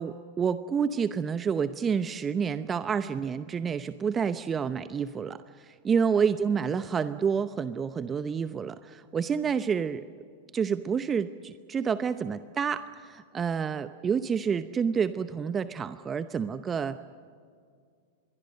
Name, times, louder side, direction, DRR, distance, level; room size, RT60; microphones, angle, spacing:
voice 1, 0.0-10.0 10.5-17.0, right 6 dB, 25° right, 13 dB, 0.8 m, -29 dB
26.0 x 22.0 x 6.5 m, 2.2 s
hypercardioid pair, 100°, 0 cm